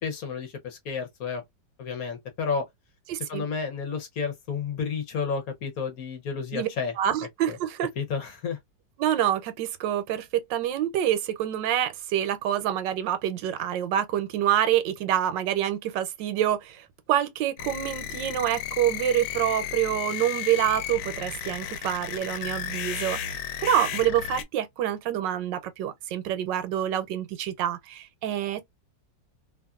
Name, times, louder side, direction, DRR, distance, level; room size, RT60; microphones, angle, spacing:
voice 1, 0.0-1.4 1.8-2.7 3.3-6.9 7.5-7.6 8.0-8.6, left 5 dB, 60° left, 1.1 m, -31 dB
voice 2, 3.1-3.4 6.5-6.7 7.0-7.9 9.0-28.6, right 11 dB, 80° right, 1.3 m, -27 dB
sound 1, 17.6-24.4, left 9 dB, 80° left, 1.2 m, -34 dB
2.9 x 2.5 x 2.3 m
omnidirectional pair, 1.9 m